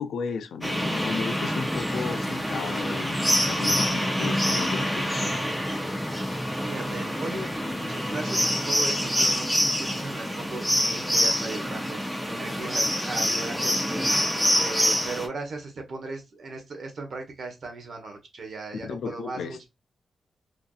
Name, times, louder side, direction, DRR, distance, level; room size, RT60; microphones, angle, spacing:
voice 1, 0.0-5.5 18.8-19.6, left 6 dB, 85° left, 0.4 m, -34 dB
sound 1, 0.6-15.3, equal, ahead, 0.6 m, -26 dB
voice 2, 6.6-12.0 12.3-14.1 14.3-19.7, right 3 dB, 65° right, 1.0 m, -37 dB
2.6 x 2.4 x 2.3 m
cardioid pair, 95°, 0 cm